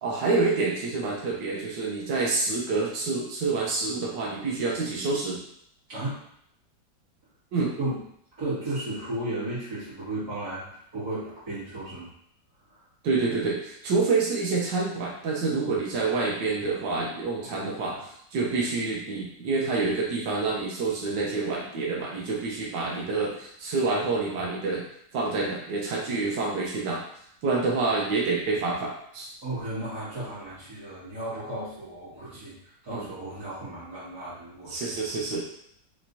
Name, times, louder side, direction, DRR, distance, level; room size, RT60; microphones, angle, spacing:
voice 1, 0.0-5.4 7.5-7.7 13.0-18.0 18.3-24.8 25.1-27.0 27.4-29.3 32.9-33.1 34.7-35.5, right 3 dB, 80° right, -3 dB, 1.4 m, -27 dB
voice 2, 5.9-6.2 7.8-8.0 8.4-12.1 12.7-12.8 17.4-18.0 29.4-34.9, right 1 dB, 65° right, -14 dB, 2.5 m, -34 dB
5.4 x 3.1 x 2.7 m, 0.70 s
omnidirectional pair, 1.9 m